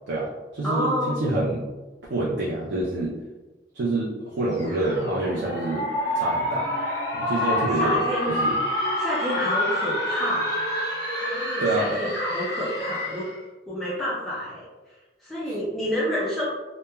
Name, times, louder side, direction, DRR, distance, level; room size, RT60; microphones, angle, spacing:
voice 1, 0.1-1.7 2.1-3.2 3.7-5.8 6.1-6.7 7.1-8.0 8.3-8.5 11.6-12.0 15.5-15.6, right 2 dB, 80° right, -4 dB, 0.4 m, -27 dB
voice 2, 0.6-1.2 7.8-8.4 8.8-10.7 11.2-13.3 13.7-15.0 15.2-16.4, equal, ahead, -9 dB, 0.4 m, -29 dB
sound 1, 4.5-13.4, left 1 dB, 25° left, 1.4 m, -27 dB
3.0 x 2.2 x 2.2 m, 1.2 s
head